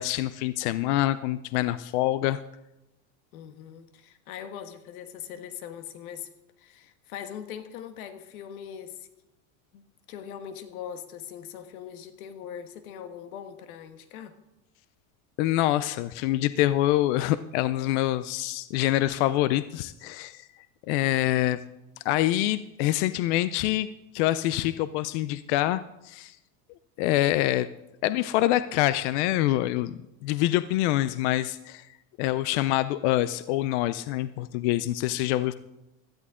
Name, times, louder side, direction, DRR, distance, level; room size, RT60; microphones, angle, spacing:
voice 1, 0.0-2.4 15.4-20.5 20.9-21.6 22.0-23.9 24.1-26.4 27.0-27.7 28.0-29.9 30.2-31.9 32.2-35.5, left 15 dB, 55° left, 0.5 m, -25 dB
voice 2, 3.3-6.3 6.6-9.1 9.7-14.4, left 9 dB, 90° left, 1.5 m, -41 dB
17.0 x 13.0 x 3.7 m
cardioid pair, 175°, 42 cm